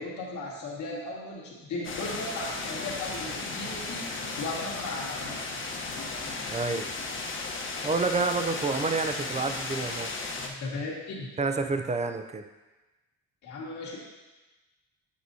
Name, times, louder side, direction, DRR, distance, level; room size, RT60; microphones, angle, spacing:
voice 1, 0.0-5.5 10.4-11.3 13.4-14.0, left 2 dB, 75° left, -5 dB, 2.0 m, -36 dB
sound 1, 1.8-10.5, left 3 dB, 40° left, 1.0 m, -35 dB
voice 2, 6.5-6.9 7.8-10.1 11.4-12.5, right 4 dB, 25° right, 8 dB, 0.5 m, -28 dB
8.4 x 6.1 x 2.8 m, 1.1 s
cardioid pair, 90°, 30 cm